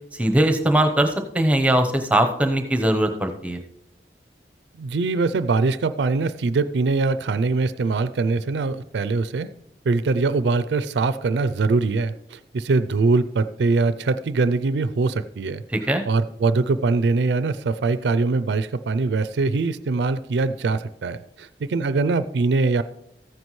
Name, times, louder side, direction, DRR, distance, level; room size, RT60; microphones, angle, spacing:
voice 1, 0.1-3.6 15.7-16.0, right 1 dB, 10° right, 5 dB, 0.8 m, -20 dB
voice 2, 4.8-9.5 9.9-15.6 16.1-22.8, right 3 dB, 80° right, 13 dB, 0.4 m, -22 dB
14.0 x 9.5 x 3.1 m, 0.80 s
head